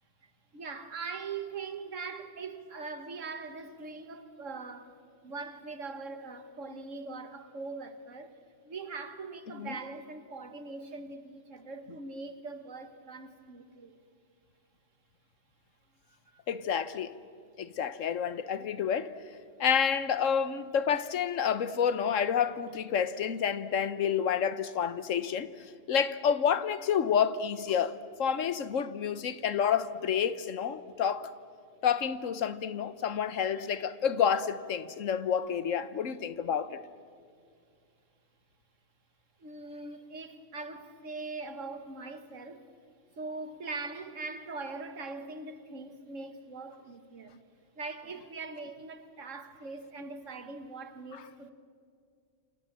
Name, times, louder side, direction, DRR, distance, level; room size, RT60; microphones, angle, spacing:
voice 1, 0.2-8.4 8.6-14.0 16.1-16.4 33.5-33.7 39.4-42.7 43.2-47.4 47.8-51.5, right 3 dB, 85° right, 2.0 m, -42 dB
voice 2, 16.5-17.2 17.6-19.1 19.6-31.3 31.8-36.8, left 7 dB, 90° left, 1.3 m, -29 dB
28.0 x 27.5 x 7.5 m
omnidirectional pair, 1.3 m